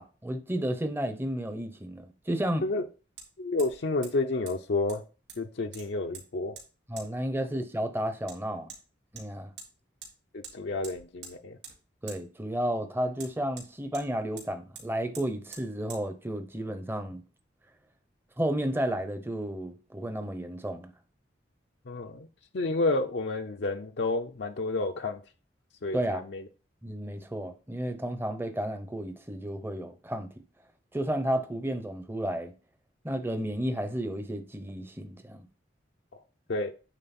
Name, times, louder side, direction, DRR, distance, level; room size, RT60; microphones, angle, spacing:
voice 1, 0.0-2.6 6.9-8.7 9.1-9.5 12.0-17.2 18.4-20.9 25.9-26.3 26.8-30.3 30.9-32.5 33.0-35.4, right 1 dB, 10° right, 0.7 m, -32 dB
Hammer, 1.2-1.3 3.2-3.3 3.6-3.8 4.0-4.1 4.5-4.6 4.9-5.4 5.7-6.2 6.6-6.7 7.0-7.1 8.3-8.4 8.7-8.8 9.2-9.7 10.0-10.1 10.4-10.5 10.8-11.3 11.6-11.8 12.1-12.2 13.2-14.1 14.4-14.5 14.7-14.9 15.1-15.3 15.5-15.6 15.9-16.0, right 5 dB, 70° right, 2.9 m, -45 dB
voice 2, 3.4-5.0 5.4-6.6 10.3-11.6 21.9-22.3 22.5-25.2 25.8-26.4 36.1-36.2 36.5-36.7, left 2 dB, 65° left, 0.6 m, -30 dB
9.1 x 3.8 x 4.2 m
head